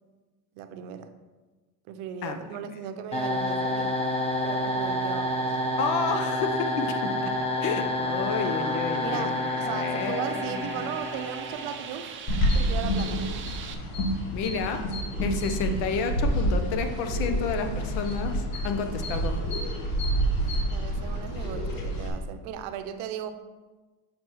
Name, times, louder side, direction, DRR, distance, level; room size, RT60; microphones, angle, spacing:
voice 1, 0.5-1.1 1.9-4.0 4.4-5.6 9.0-12.2 12.5-13.2 20.5-23.3, right 8 dB, 75° right, 10 dB, 0.7 m, -37 dB
voice 2, 2.2-2.6 5.8-7.3 7.6-10.8 14.3-14.8 15.2-19.4, left 5 dB, 80° left, 7 dB, 0.9 m, -31 dB
sound 1, 3.1-12.0, left 1 dB, 15° left, 0.7 m, -29 dB
sound 2, 6.8-13.7, right 7 dB, 30° right, 0.4 m, -42 dB
sound 3, 12.3-22.1, equal, 50° left, 1.3 m, -28 dB
7.3 x 5.1 x 3.0 m, 1.3 s
cardioid pair, 145°, 43 cm